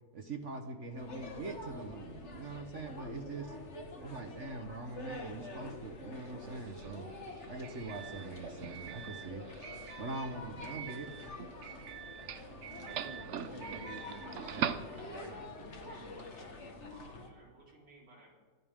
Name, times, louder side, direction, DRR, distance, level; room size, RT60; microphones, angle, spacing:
voice 1, 0.1-3.6 4.0-7.1 7.5-9.5 10.0-11.3, right 3 dB, 45° right, 6 dB, 1.3 m, -43 dB
sound 1, 1.0-17.3, left 2 dB, 35° left, 1.9 m, -47 dB
Doorbell, 6.4-15.5, right 8 dB, 85° right, 0.6 m, -43 dB
voice 2, 12.6-14.9 15.1-15.3, right 2 dB, 15° right, 0 dB, 2.5 m, -50 dB
voice 3, 14.6-18.3, equal, 70° right, -4 dB, 5.1 m, -57 dB
25.0 x 15.5 x 3.7 m, 1.5 s
omnidirectional pair, 2.1 m